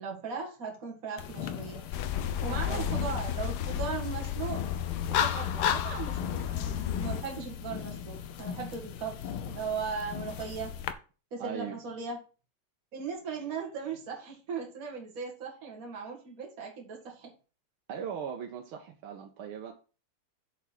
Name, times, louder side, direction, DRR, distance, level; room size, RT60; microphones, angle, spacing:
voice 1, 0.0-1.8 2.4-4.6 5.2-10.7 11.3-12.2 12.9-17.3, right 5 dB, 40° right, -1 dB, 2.3 m, -38 dB
sound 1, 1.2-10.9, left 8 dB, 85° left, 1.6 m, -39 dB
sound 2, 1.9-7.2, left 9 dB, 65° left, 1.1 m, -31 dB
voice 2, 11.4-11.8 17.9-19.7, right 8 dB, 80° right, 2 dB, 1.8 m, -38 dB
7.1 x 4.8 x 5.8 m, 0.35 s
omnidirectional pair, 2.3 m